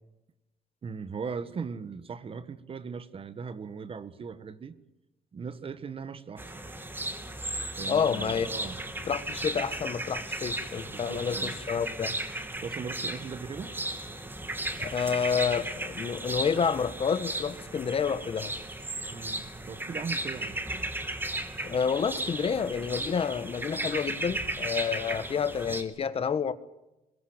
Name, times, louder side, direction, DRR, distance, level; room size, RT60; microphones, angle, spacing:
voice 1, 0.8-4.8 5.3-6.5 7.8-8.8 10.9-11.5 12.6-13.7 19.1-19.4 19.7-20.6, right 5 dB, 40° right, 13 dB, 1.6 m, -38 dB
sound 1, 6.4-25.8, right 1 dB, 15° right, 3.1 m, -35 dB
voice 2, 7.9-8.5 9.0-12.1 14.8-18.5 21.6-26.5, left 6 dB, 40° left, 13 dB, 1.3 m, -29 dB
22.5 x 21.0 x 9.0 m, 0.98 s
cardioid pair, 115°, 15 cm